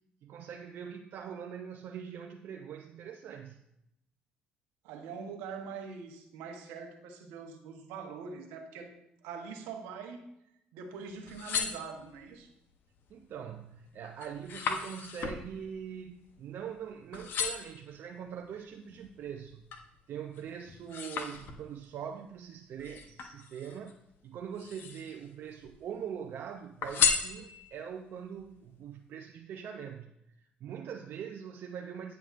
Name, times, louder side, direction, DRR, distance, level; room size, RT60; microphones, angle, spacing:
voice 1, 0.2-3.6 13.1-19.6 20.1-24.0 24.2-30.1 30.6-32.2, right 8 dB, 60° right, 4 dB, 0.5 m, -42 dB
voice 2, 4.8-8.9 9.2-10.2 10.7-12.5, right 5 dB, 80° right, 4 dB, 1.0 m, -43 dB
sound 1, 11.1-12.4 13.0-13.4 13.7-16.8 17.1-17.8 18.4-19.9 20.3-21.9 22.8-23.9 24.5-25.3 25.6-26.3 26.8-27.9 28.4-28.5, left 6 dB, 65° left, 0.8 m, -35 dB
9.3 x 5.8 x 2.5 m, 0.81 s
supercardioid pair, 70°, 4 cm